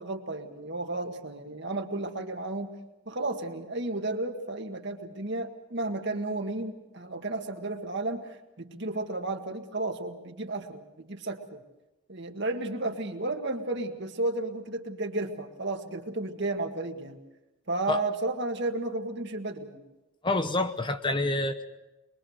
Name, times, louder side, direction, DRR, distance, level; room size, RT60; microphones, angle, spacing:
voice 1, 0.0-2.7 3.1-11.6 12.1-17.2 17.7-19.8, right 2 dB, 55° right, 5 dB, 1.8 m, -33 dB
voice 2, 20.2-21.6, left 2 dB, 20° left, 8 dB, 0.9 m, -27 dB
23.0 x 23.0 x 6.6 m, 1.0 s
head